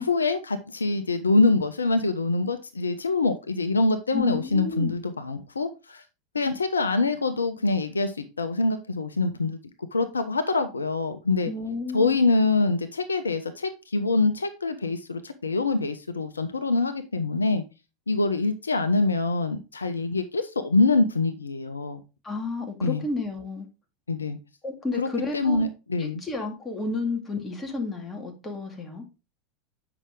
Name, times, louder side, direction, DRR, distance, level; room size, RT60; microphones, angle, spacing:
voice 1, 0.0-6.0 6.3-9.6 9.9-11.5 11.9-17.6 18.1-22.0 22.8-23.0 24.1-24.4 25.0-25.1 25.3-26.2, left 3 dB, 80° left, 0.7 m, -25 dB
voice 2, 4.1-5.0 11.5-12.2 22.2-23.7 24.6-25.7 26.0-29.1, left 3 dB, 15° left, 2.3 m, -31 dB
8.1 x 5.8 x 3.7 m
figure-of-eight pair, 85°, 0 cm